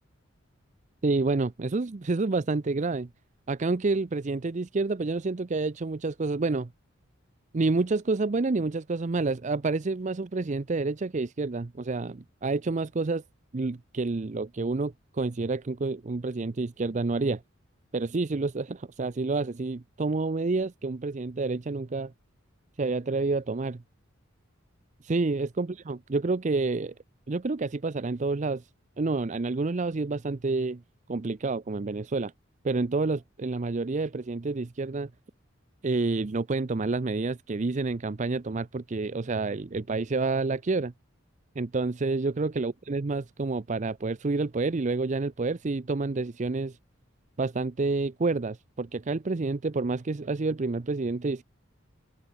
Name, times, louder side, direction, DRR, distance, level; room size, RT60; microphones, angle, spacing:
voice 1, 1.0-3.1 3.5-6.7 7.5-13.2 13.5-17.4 17.9-22.1 22.8-23.8 25.0-26.9 27.3-28.7 29.0-30.8 31.1-32.3 32.6-35.1 35.8-40.9 41.6-46.8 47.4-51.4, right 3 dB, 35° right, 0.5 m, -28 dB
head